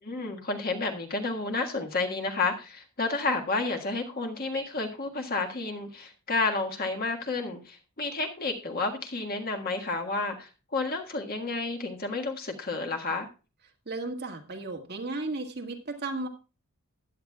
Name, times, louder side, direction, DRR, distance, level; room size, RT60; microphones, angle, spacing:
voice 1, 0.0-13.3, left 3 dB, 45° left, 3 dB, 1.6 m, -31 dB
voice 2, 13.9-16.3, right 2 dB, 50° right, 3 dB, 1.8 m, -34 dB
15.5 x 10.0 x 2.3 m, 0.32 s
head